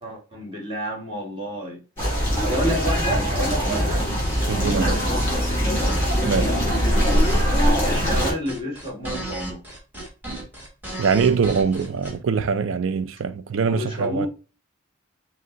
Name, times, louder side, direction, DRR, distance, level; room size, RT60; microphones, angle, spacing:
voice 1, 0.0-1.8 2.4-4.0 4.5-5.2 5.4-5.8 7.8-9.6 13.6-14.3, equal, 25° right, 1.6 m, -30 dB
sound 1, 2.0-8.3, equal, 10° left, 2.4 m, -22 dB
sound 2, 3.4-12.2, right 1 dB, 10° right, 1.2 m, -35 dB
voice 2, 4.5-5.0 6.3-6.6 11.0-14.3, right 5 dB, 65° right, 0.4 m, -23 dB
5.9 x 2.0 x 3.7 m
head